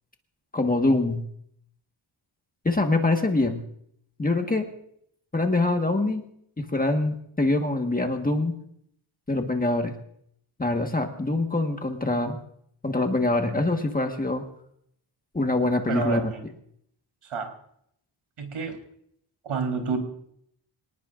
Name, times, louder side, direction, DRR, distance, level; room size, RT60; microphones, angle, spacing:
voice 1, 0.5-1.2 2.6-3.6 4.2-4.7 5.3-6.2 6.6-8.5 9.3-9.9 10.6-12.4 12.8-14.4 15.3-16.2, left 2 dB, 15° left, 4 dB, 1.5 m, -24 dB
voice 2, 15.9-16.4 17.3-17.5 18.4-18.8 19.4-20.0, right 5 dB, 85° right, 4 dB, 4.0 m, -29 dB
26.0 x 19.0 x 2.5 m, 0.70 s
wide cardioid pair, 165°, 50 cm